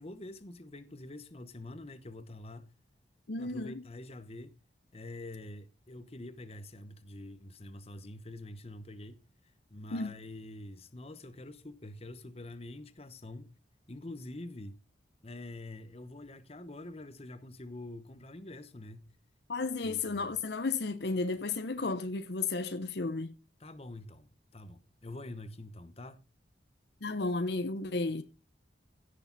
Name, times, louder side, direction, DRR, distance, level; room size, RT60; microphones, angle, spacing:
voice 1, 0.0-2.7 3.4-4.6 4.9-9.2 9.7-13.5 13.9-14.8 15.2-19.2 19.8-20.2 23.6-26.2, left 2 dB, 35° left, 1.0 m, -46 dB
voice 2, 3.3-3.8 9.9-10.1 19.5-23.4 27.0-28.2, left 3 dB, 60° left, 0.8 m, -33 dB
16.5 x 6.7 x 4.0 m
head